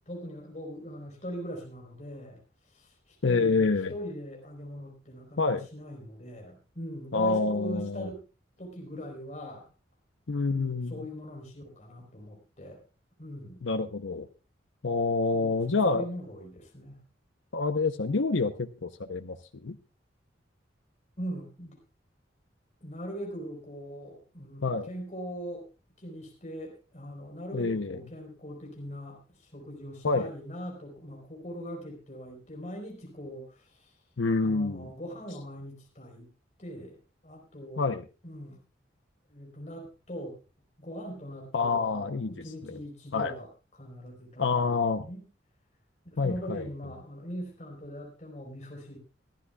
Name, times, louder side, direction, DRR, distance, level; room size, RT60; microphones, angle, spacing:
voice 1, 0.1-2.4 2.7-8.2 8.6-9.7 10.5-12.8 13.2-13.7 15.3-17.0 21.2-21.8 22.8-25.7 26.0-33.9 34.4-36.3 36.6-37.8 38.2-38.6 39.3-40.4 40.8-45.3 46.0-49.0, equal, 40° left, 1 dB, 4.1 m, -41 dB
voice 2, 3.2-3.9 5.4-5.7 7.1-8.1 10.3-11.0 13.6-14.3 14.8-16.0 17.5-19.4 19.6-19.8 24.6-24.9 27.5-28.0 30.0-30.3 34.2-34.9 37.8-38.0 41.5-42.8 43.1-43.3 44.4-45.0 46.2-46.6, left 4 dB, 85° left, 7 dB, 0.8 m, -27 dB
24.0 x 12.5 x 2.3 m, 0.31 s
head